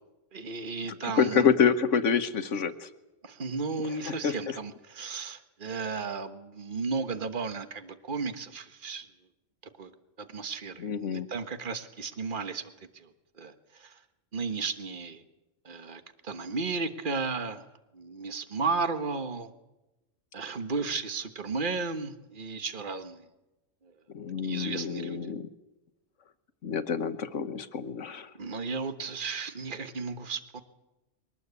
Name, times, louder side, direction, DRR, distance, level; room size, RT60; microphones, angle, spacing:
voice 1, 0.3-1.5 3.2-9.1 9.8-9.9 10.2-14.0 14.3-15.2 15.6-17.6 17.9-19.5 20.3-23.2 24.4-25.2 28.3-30.6, right 4 dB, 40° right, 9 dB, 1.5 m, -34 dB
voice 2, 1.0-2.9 4.0-4.6 10.8-11.3 24.1-25.5 26.6-28.3, left 6 dB, 70° left, 10 dB, 1.4 m, -27 dB
23.0 x 19.0 x 8.3 m, 1.0 s
omnidirectional pair, 1.3 m